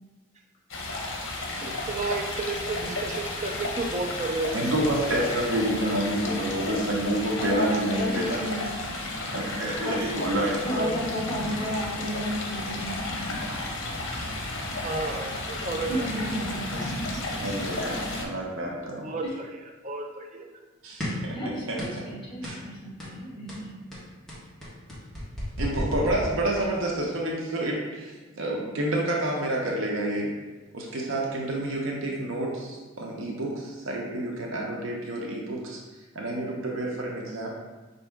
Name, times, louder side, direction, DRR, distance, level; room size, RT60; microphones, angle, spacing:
Stream, 0.7-18.2, left 2 dB, 70° left, 0.8 m, -33 dB
voice 1, 1.6-4.7 5.0-5.2 9.2-9.3 14.7-16.1 16.7-17.6 19.0-19.5 19.8-20.5, right 3 dB, 35° right, 2 dB, 0.5 m, -33 dB
voice 2, 4.5-8.4 9.3-11.0 17.4-19.1 20.8-21.8 22.4-22.5 25.6-30.3 30.7-35.8 36.1-37.5, right 1 dB, 70° right, -2 dB, 0.7 m, -29 dB
voice 3, 7.4-8.7 9.8-10.0 10.6-13.0 15.9-16.9 19.2-19.3 21.3-23.8, equal, 25° left, -6 dB, 1.5 m, -32 dB
sound 1, 21.0-21.3 21.8-22.1 22.4-22.6 23.0-23.2 23.5-26.8, equal, ahead, 1.2 m, -34 dB
5.2 x 2.7 x 3.5 m, 1.2 s
head